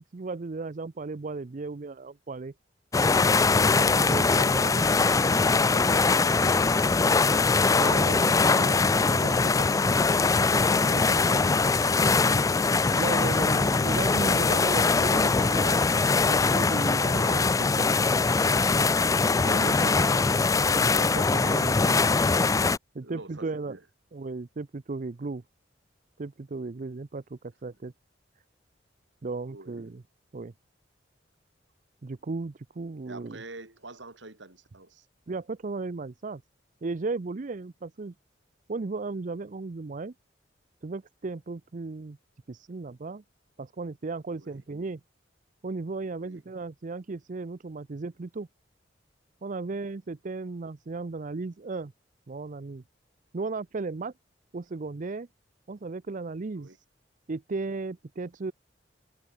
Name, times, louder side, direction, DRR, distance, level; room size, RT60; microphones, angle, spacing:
voice 1, 0.0-2.5 3.6-5.0 7.7-9.8 10.5-10.7 12.9-15.9 16.3-17.0 17.3-17.4 17.8-17.9 19.4-20.3 21.0-22.1 22.9-23.8 24.1-25.4 26.2-27.9 29.2-30.0 30.3-30.5 32.0-33.4 35.3-36.4 36.8-38.1 38.7-40.1 40.8-42.2 42.5-43.2 43.6-45.0 45.6-48.5 49.4-51.9 52.3-52.8 53.3-54.1 54.5-55.3 55.7-56.8 57.3-58.5, right 3 dB, 45° right, 0.5 m, -35 dB
sound 1, 2.9-22.8, left 4 dB, 20° left, 0.4 m, -22 dB
voice 2, 4.6-7.3 10.8-12.9 16.9-19.1 23.0-23.8 29.4-29.8 33.1-35.1 44.4-44.6 46.2-46.4 56.5-56.8, right 2 dB, 80° right, 4.0 m, -46 dB
sound 2, 11.0-16.4, left 1 dB, 75° left, 2.6 m, -47 dB
head